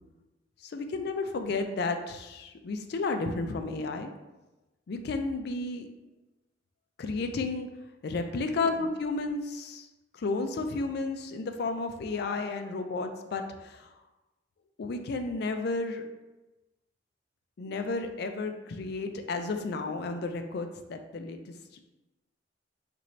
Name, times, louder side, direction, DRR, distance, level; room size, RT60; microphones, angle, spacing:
voice 1, 0.6-4.1 4.9-5.9 7.0-7.7 8.0-9.9 10.1-13.9 14.8-16.0 17.6-21.8, left 3 dB, 60° left, 6 dB, 0.4 m, -32 dB
3.0 x 2.6 x 4.3 m, 1.1 s
head